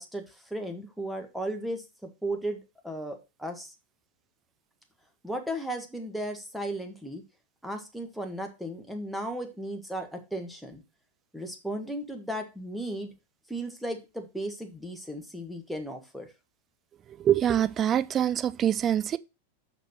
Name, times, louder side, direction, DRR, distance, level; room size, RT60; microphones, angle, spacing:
voice 1, 0.0-3.7 5.2-7.2 7.6-10.8 11.3-13.1 13.5-16.3, right 1 dB, ahead, 1.6 m, -35 dB
voice 2, 17.2-19.2, right 10 dB, 25° right, 0.5 m, -24 dB
6.1 x 6.0 x 4.3 m
figure-of-eight pair, 90°, 0 cm